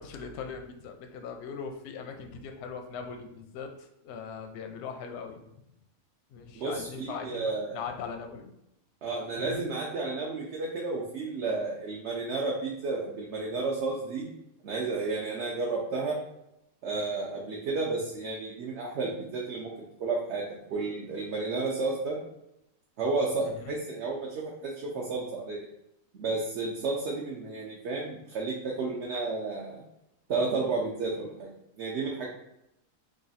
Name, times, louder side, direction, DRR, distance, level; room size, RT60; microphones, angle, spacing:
voice 1, 0.0-5.4 6.3-8.5 9.4-9.7 23.4-23.8, left 6 dB, 65° left, 5 dB, 0.7 m, -40 dB
voice 2, 6.5-7.8 9.0-14.3 14.6-16.2 16.8-22.2 23.0-25.6 26.1-29.8 30.3-31.5 31.8-32.3, right 3 dB, 60° right, -3 dB, 0.8 m, -32 dB
3.1 x 2.5 x 4.0 m, 0.83 s
omnidirectional pair, 1.5 m